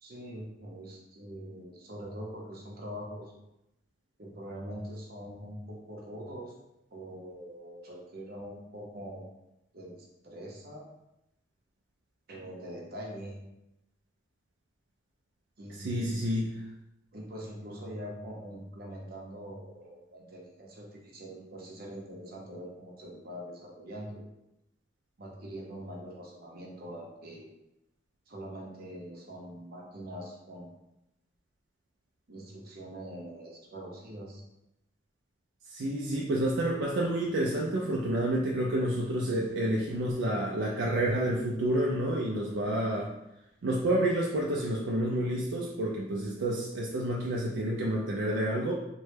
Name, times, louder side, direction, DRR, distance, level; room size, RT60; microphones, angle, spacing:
voice 1, 0.0-3.3 4.2-6.5 6.9-9.3 9.7-10.9 12.3-13.4 15.6-16.5 17.1-24.3 25.2-27.5 28.3-30.7 32.3-34.4, equal, 55° right, -2 dB, 0.7 m, -43 dB
voice 2, 15.8-16.5 35.7-43.1 43.6-48.7, right 1 dB, 75° right, -2 dB, 0.4 m, -29 dB
3.1 x 2.2 x 3.2 m, 0.88 s
head